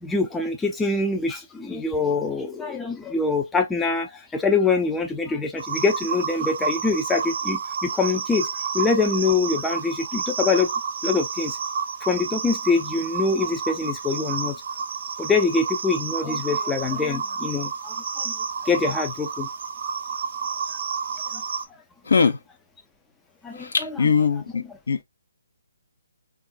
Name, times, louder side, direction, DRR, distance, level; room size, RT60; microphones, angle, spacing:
voice 1, 0.0-8.5 8.7-10.7 11.0-11.6 12.0-14.5 15.2-18.3 18.7-19.5 23.4-24.1, left 4 dB, 5° left, 0.3 m, -24 dB
sound 1, 5.6-21.7, right 6 dB, 50° right, 0.5 m, -30 dB
voice 2, 22.1-22.4 23.5-25.0, left 5 dB, 65° left, 0.6 m, -21 dB
3.6 x 2.3 x 2.3 m
figure-of-eight pair, 145°, 0 cm